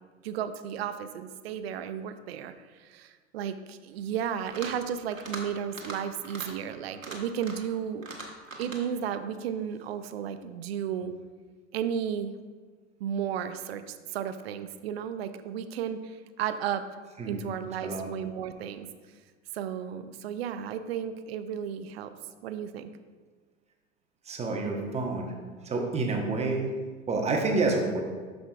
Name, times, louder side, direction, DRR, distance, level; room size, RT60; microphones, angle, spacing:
voice 1, 0.2-2.5 2.8-8.1 8.6-11.1 11.7-12.4 13.0-16.9 17.3-18.9 19.5-22.1 22.4-22.9, right 8 dB, 55° right, 10 dB, 0.6 m, -33 dB
sound 1, 4.3-4.8 5.1-5.4 5.7-6.0 6.2-6.5 6.9-7.7 8.0-8.8, right 3 dB, 90° right, 1.3 m, -40 dB
voice 2, 24.3-25.3 25.6-26.7 27.1-28.0, right 3 dB, 15° right, 1 dB, 1.0 m, -28 dB
12.0 x 5.1 x 2.4 m, 1.5 s
figure-of-eight pair, 90°, 38 cm